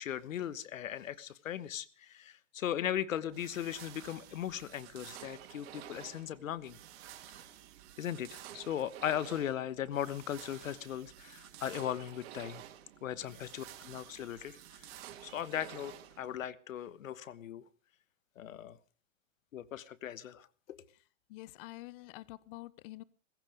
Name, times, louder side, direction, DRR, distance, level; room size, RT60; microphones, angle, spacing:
voice 1, 0.0-6.8 8.0-12.6 13.0-14.9 15.2-17.6 18.4-18.8 19.5-20.8, left 10 dB, 85° left, 19 dB, 1.3 m, -38 dB
sound 1, 3.3-16.4, right 12 dB, 50° right, 2.4 m, -51 dB
voice 2, 21.3-23.0, left 18 dB, 45° left, 20 dB, 0.8 m, -47 dB
17.5 x 15.5 x 5.1 m, 0.38 s
hypercardioid pair, 130°, 39 cm